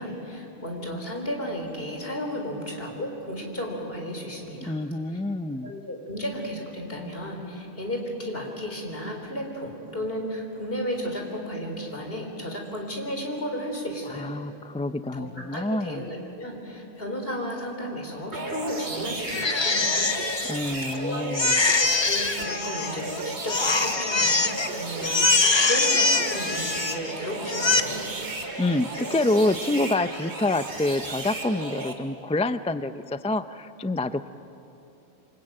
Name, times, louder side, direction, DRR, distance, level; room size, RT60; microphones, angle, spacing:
voice 1, 0.0-4.7 5.6-14.3 15.1-20.0 20.6-28.1, equal, 60° left, 2 dB, 4.1 m, -34 dB
voice 2, 4.6-5.7 14.1-16.0 20.5-21.6 28.6-34.3, left 2 dB, 10° left, 12 dB, 0.3 m, -27 dB
sound 1, 18.3-31.9, right 2 dB, 80° right, 2.4 m, -34 dB
Crying sobbing, 19.3-21.0 21.3-23.1 23.5-24.7 25.0-27.1 27.5-27.8, left 3 dB, 25° left, 0.9 m, -23 dB
28.0 x 23.5 x 9.0 m, 2.9 s
omnidirectional pair, 1.1 m